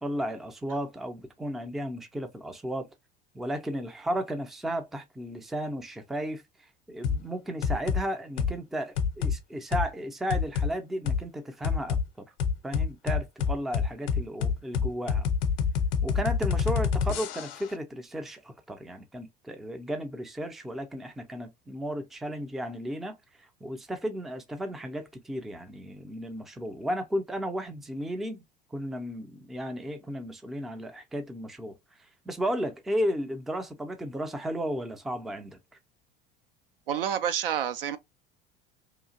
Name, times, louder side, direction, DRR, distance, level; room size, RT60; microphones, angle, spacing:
voice 1, 0.0-2.9 3.3-6.4 6.9-12.2 12.6-15.3 16.0-23.2 23.6-28.4 28.7-31.8 32.3-35.6, equal, ahead, 0.4 m, -34 dB
sound 1, 7.0-7.2 7.6-8.0 8.4-8.6 9.0-9.4 9.7-9.9 10.3-10.7 11.1-11.2 11.6-12.0 12.4-17.7, left 6 dB, 50° left, 0.6 m, -27 dB
voice 2, 36.9-38.0, right 9 dB, 70° right, 0.5 m, -28 dB
2.8 x 2.4 x 2.7 m
figure-of-eight pair, 70°, 29 cm